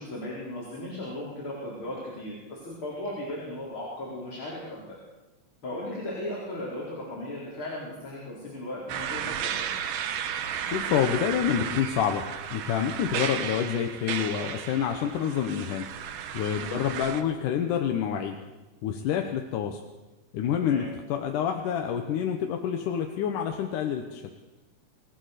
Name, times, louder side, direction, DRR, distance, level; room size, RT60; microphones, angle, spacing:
voice 1, 0.0-5.0 5.6-9.7 16.5-16.8 20.6-20.9, left 1 dB, 35° left, -5 dB, 5.2 m, -36 dB
sound 1, 8.9-17.2, right 9 dB, 70° right, 2.7 m, -34 dB
voice 2, 10.6-12.3 12.5-15.9 16.3-18.4 18.8-19.8 20.3-24.2, left 8 dB, 70° left, 4 dB, 2.5 m, -28 dB
26.0 x 17.5 x 6.8 m, 1.1 s
omnidirectional pair, 4.0 m